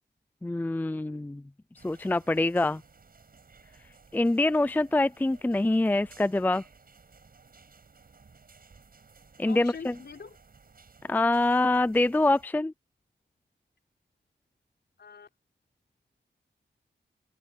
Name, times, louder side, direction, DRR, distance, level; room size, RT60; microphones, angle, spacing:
voice 1, 0.4-1.4 1.8-2.8 4.1-6.6 9.4-9.9 11.1-12.7, left 2 dB, 10° left, 0.4 m, -25 dB
sound 1, 1.8-12.5, right 4 dB, 55° right, 6.8 m, -56 dB
voice 2, 9.4-10.4 15.0-15.3, left 5 dB, 65° left, 4.7 m, -44 dB
open air
wide cardioid pair, 110°, 19 cm